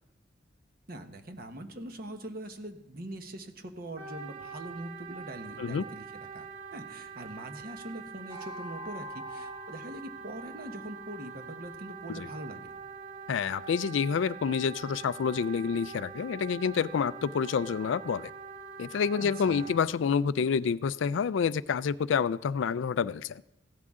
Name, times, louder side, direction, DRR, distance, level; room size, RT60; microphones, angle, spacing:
voice 1, 0.9-6.0 6.3-6.5 6.7-12.6 19.2-19.7, right 1 dB, 50° right, 7 dB, 1.2 m, -42 dB
Wind instrument woodwind instrument, 4.0-19.8, right 5 dB, 80° right, 2.7 m, -44 dB
sound 1, 8.3-12.9, equal, 30° right, 5.6 m, -48 dB
voice 2, 13.3-18.3 18.8-23.4, left 6 dB, 75° left, 18 dB, 0.3 m, -28 dB
15.5 x 12.0 x 3.7 m, 0.91 s
head